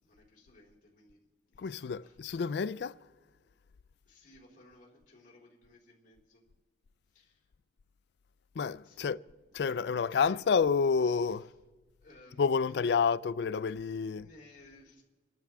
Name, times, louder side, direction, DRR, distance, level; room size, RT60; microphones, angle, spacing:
voice 1, 0.0-2.7 3.3-3.6 4.0-6.4 7.1-7.5 8.8-9.2 10.1-10.4 11.0-11.5 12.0-13.0 13.9-15.0, left 2 dB, 45° left, 3.3 m, -59 dB
voice 2, 1.6-3.0 8.6-9.2 9.5-11.5 12.4-14.3, left 5 dB, 70° left, 0.4 m, -29 dB
26.5 x 12.0 x 3.5 m
head